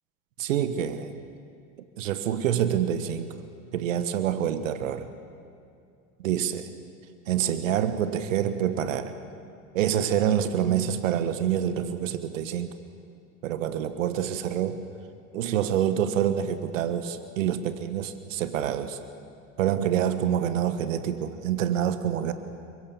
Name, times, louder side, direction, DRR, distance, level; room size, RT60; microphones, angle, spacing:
voice 1, 0.4-1.1 2.0-3.3 3.7-5.1 6.2-6.7 7.3-9.1 9.7-12.7 13.4-14.9 15.3-19.0 19.6-22.3, right 9 dB, 80° right, 11 dB, 1.3 m, -26 dB
23.0 x 22.0 x 7.1 m, 2.4 s
hypercardioid pair, 80°, 38 cm